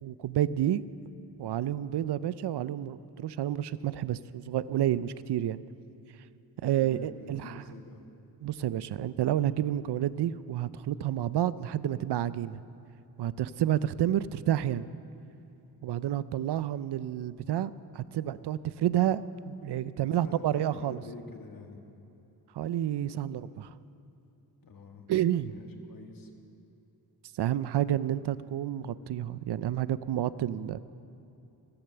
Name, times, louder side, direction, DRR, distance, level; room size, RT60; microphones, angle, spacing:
voice 1, 0.0-0.8 1.4-5.6 6.6-7.6 8.4-12.6 13.2-14.9 15.8-21.0 22.5-23.7 25.1-25.5 27.4-30.8, right 11 dB, 75° right, 16 dB, 0.5 m, -30 dB
voice 2, 6.8-8.0 19.9-21.8 24.6-25.1 25.4-26.3, left 3 dB, 55° left, 3 dB, 1.6 m, -47 dB
14.0 x 13.5 x 6.8 m, 2.9 s
wide cardioid pair, 140°, 41 cm